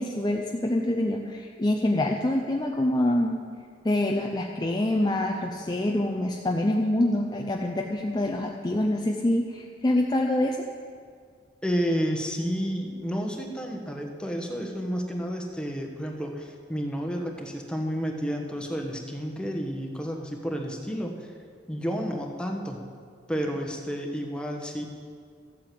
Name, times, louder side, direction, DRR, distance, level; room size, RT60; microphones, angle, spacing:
voice 1, 0.0-3.4 3.8-10.6, left 1 dB, 25° left, 1 dB, 0.6 m, -26 dB
voice 2, 11.6-21.3 21.7-22.8 23.3-24.8, equal, 5° left, 1 dB, 1.3 m, -31 dB
13.5 x 8.7 x 7.6 m, 2.1 s
head